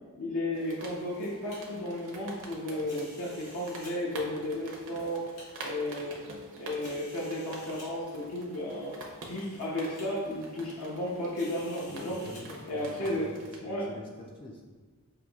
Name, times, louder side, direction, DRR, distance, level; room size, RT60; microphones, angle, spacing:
voice 1, 0.2-5.2 5.6-8.9 9.3-12.2 12.7-13.3 13.6-13.9, left 1 dB, 65° left, -6 dB, 0.6 m, -34 dB
sound 1, 0.5-13.6, right 2 dB, 60° right, 0.6 m, -47 dB
sound 2, 0.9-1.6 2.8-3.9 4.6-5.4 6.1-6.2 6.8-7.9 8.8-8.9 9.3-9.6 10.0-10.1 11.3-12.4, left 1 dB, 85° left, 1.4 m, -52 dB
voice 2, 11.9-13.3 13.6-14.6, left 1 dB, 25° left, -1 dB, 0.3 m, -44 dB
5.5 x 2.6 x 2.3 m, 1.4 s
head